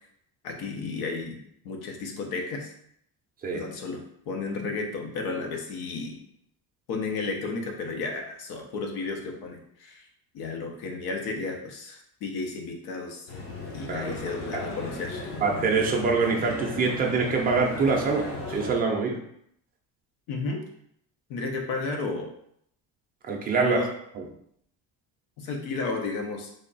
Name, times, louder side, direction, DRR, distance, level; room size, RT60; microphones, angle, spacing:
voice 1, 0.4-2.7 3.5-6.2 6.9-10.1 10.3-13.3 13.7-15.2 20.3-20.6 21.3-22.3 23.6-23.9 25.4-26.5, left 3 dB, 65° left, 3 dB, 0.9 m, -33 dB
sound 1, 13.3-18.8, left 2 dB, 30° left, 0.7 m, -36 dB
voice 2, 15.4-19.2 23.3-23.8 24.1-24.2, right 4 dB, 20° right, 0 dB, 0.5 m, -25 dB
3.3 x 2.3 x 4.0 m, 0.70 s
cardioid pair, 155°, 41 cm